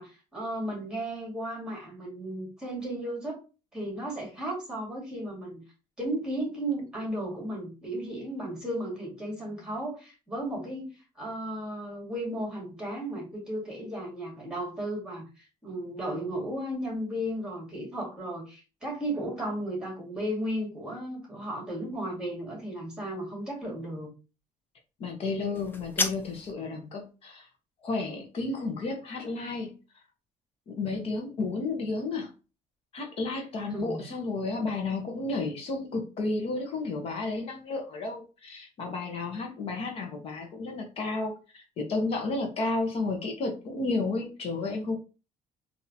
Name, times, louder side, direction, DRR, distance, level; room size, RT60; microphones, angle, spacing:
voice 1, 0.0-3.4 3.7-5.6 6.0-10.9 11.2-24.1 33.7-34.0, right 1 dB, 5° right, -2 dB, 2.0 m, -34 dB
voice 2, 25.0-27.5 27.8-29.7 30.7-32.3 32.9-45.0, left 3 dB, 45° left, 4 dB, 1.1 m, -32 dB
sound 1, 25.5-26.6, left 3 dB, 15° left, 0.4 m, -32 dB
3.7 x 2.8 x 2.8 m, 0.32 s
cardioid pair, 140°, 13 cm